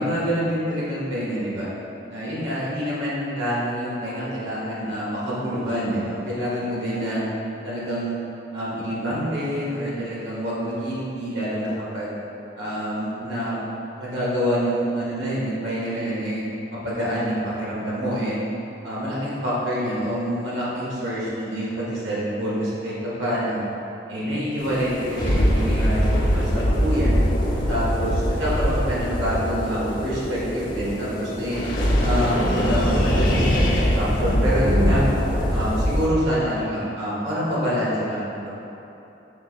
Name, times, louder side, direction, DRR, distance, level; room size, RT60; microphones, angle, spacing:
voice 1, 0.0-1.7 2.1-7.2 7.6-8.2 8.5-12.1 12.6-13.5 14.0-16.4 16.7-18.4 18.8-23.6 24.1-27.2 27.7-31.6 32.0-35.0 35.5-38.5, equal, 85° right, -8 dB, 1.2 m, -26 dB
sound 1, 24.6-36.1, equal, 50° left, 0.9 m, -22 dB
5.2 x 3.8 x 2.4 m, 3.0 s
head